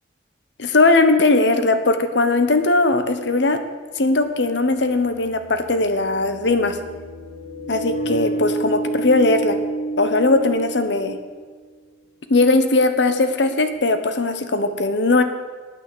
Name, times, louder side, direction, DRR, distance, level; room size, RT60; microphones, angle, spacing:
voice 1, 0.6-3.6 4.0-6.8 7.7-9.6 10.0-11.2 12.3-15.2, left 2 dB, 75° left, 9 dB, 1.0 m, -19 dB
sound 1, 3.0-3.1 4.6-11.5, right 2 dB, 50° left, 2.4 m, -30 dB
9.4 x 9.2 x 7.8 m, 1.5 s
head